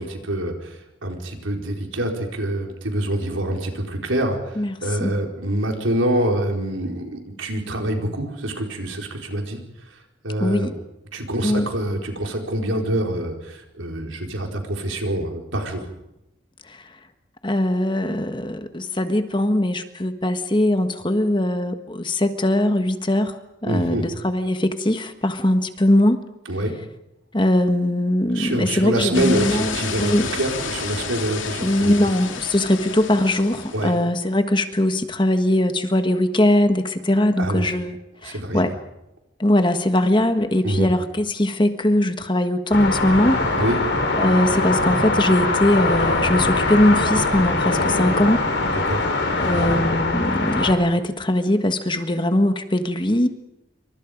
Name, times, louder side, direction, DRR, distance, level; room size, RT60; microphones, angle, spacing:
voice 1, 0.0-4.6 4.8-9.6 10.2-10.7 11.1-15.8 23.6-24.0 26.5-26.7 28.3-31.9 33.7-33.9 37.4-37.7 38.2-38.7 40.6-40.9 43.5-43.8 48.7-49.0, right 1 dB, 90° right, 2 dB, 4.6 m, -25 dB
voice 2, 4.6-5.2 10.4-10.7 11.4-11.7 16.7-16.8 17.4-23.3 23.6-26.2 27.3-30.3 31.6-38.7 39.4-43.4 44.1-48.5 49.4-53.3, left 1 dB, 25° left, 8 dB, 1.5 m, -21 dB
sound 1, 29.1-33.9, left 5 dB, 85° left, 3.0 m, -30 dB
sound 2, 42.7-50.7, left 2 dB, 65° left, 4.4 m, -22 dB
27.5 x 25.0 x 5.2 m, 0.89 s
head